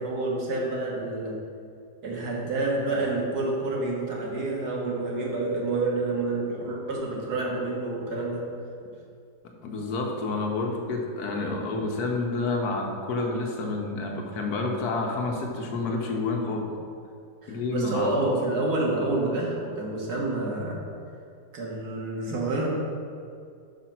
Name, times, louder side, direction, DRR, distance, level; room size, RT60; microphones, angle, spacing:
voice 1, 0.0-1.3 2.0-8.5 17.4-20.8 21.5-22.7, right 2 dB, 65° right, -3 dB, 1.8 m, -28 dB
voice 2, 9.6-16.7 17.5-18.2, left 3 dB, 65° left, 1 dB, 1.4 m, -29 dB
5.8 x 5.1 x 5.9 m, 2.3 s
omnidirectional pair, 1.9 m